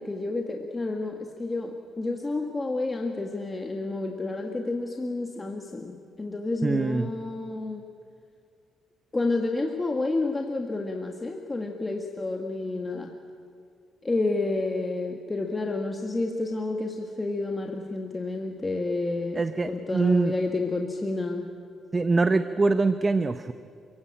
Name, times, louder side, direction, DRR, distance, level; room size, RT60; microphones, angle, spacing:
voice 1, 0.0-7.8 9.1-13.1 14.0-19.4 19.7-21.5, left 2 dB, 20° left, 2 dB, 1.7 m, -30 dB
voice 2, 6.6-7.1 19.3-20.3 21.9-23.5, right 3 dB, 25° right, 11 dB, 0.8 m, -23 dB
29.0 x 16.0 x 8.9 m, 2.3 s
cardioid pair, 90°, 0 cm